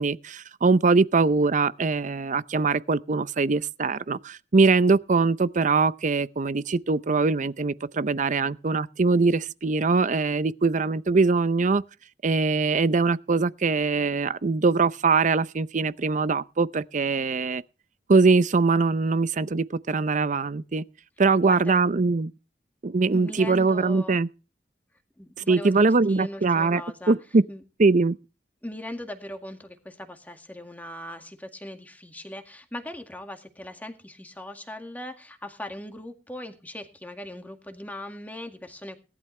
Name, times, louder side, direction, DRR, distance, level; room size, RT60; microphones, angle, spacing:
voice 1, 0.0-11.8 12.2-17.6 18.1-20.8 21.2-22.3 22.8-24.3 25.5-26.8 27.1-27.4 27.8-28.2, right 4 dB, 45° right, 0.6 m, -22 dB
voice 2, 21.4-21.8 23.1-24.2 25.2-27.2 27.5-27.6 28.6-39.0, left 1 dB, 10° left, 2.0 m, -39 dB
18.0 x 12.0 x 3.3 m
head